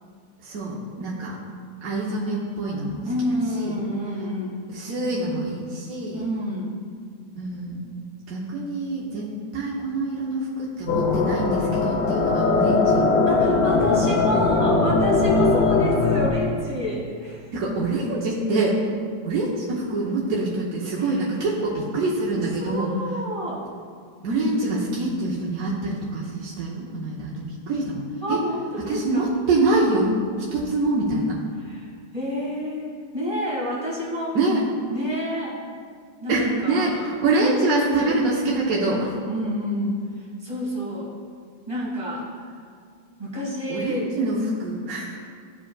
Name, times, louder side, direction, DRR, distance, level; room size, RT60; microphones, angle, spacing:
voice 1, 0.4-1.4 1.8-3.0 3.5-3.8 4.7-6.2 7.3-7.8 8.3-13.0 17.5-18.8 19.2-22.9 24.2-28.0 28.3-28.4 28.8-30.1 30.5-31.4 34.3-34.6 36.3-39.1 43.7-45.2, right 2 dB, 60° right, -5 dB, 1.2 m, -25 dB
voice 2, 3.0-4.6 6.1-6.7 13.3-17.5 21.0-21.3 22.6-23.7 28.2-29.3 31.5-34.4 34.9-35.6 36.2-37.1 37.4-38.1 39.3-41.1 41.7-42.6 43.2-44.1, equal, 20° right, -5 dB, 1.6 m, -29 dB
sound 1, 10.9-16.3, left 3 dB, 65° left, 1.2 m, -20 dB
13.5 x 5.0 x 2.2 m, 2.1 s
omnidirectional pair, 1.8 m